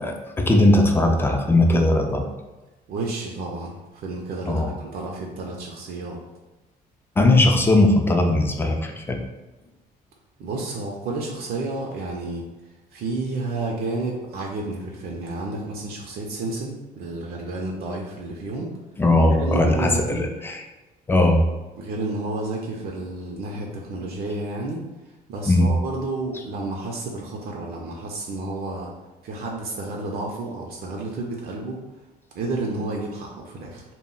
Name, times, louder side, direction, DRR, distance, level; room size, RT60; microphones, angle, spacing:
voice 1, 0.0-2.2 4.5-4.7 7.2-9.2 19.0-20.6 21.1-21.4 25.5-25.7, left 2 dB, 15° left, 3 dB, 0.3 m, -19 dB
voice 2, 2.9-6.2 10.4-12.4 12.9-18.7 19.4-20.3 21.8-24.8 25.3-28.9 29.2-31.8 32.3-33.8, right 2 dB, 65° right, -1 dB, 0.5 m, -31 dB
2.1 x 2.0 x 3.7 m, 1.1 s
cardioid pair, 110°, 17 cm